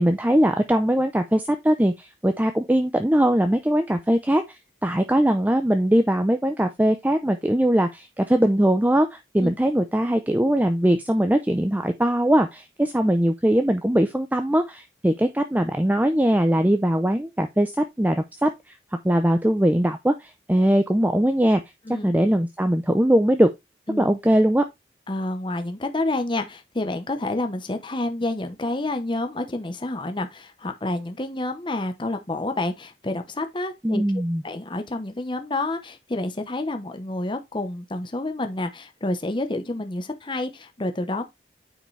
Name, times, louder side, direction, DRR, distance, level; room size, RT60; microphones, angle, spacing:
voice 1, 0.0-18.8 19.0-21.6 21.9-23.5 24.0-24.6 33.8-34.4, right 1 dB, 10° right, 0.6 m, -21 dB
voice 2, 25.1-41.2, left 2 dB, 25° left, 0.9 m, -29 dB
9.1 x 5.0 x 3.2 m
head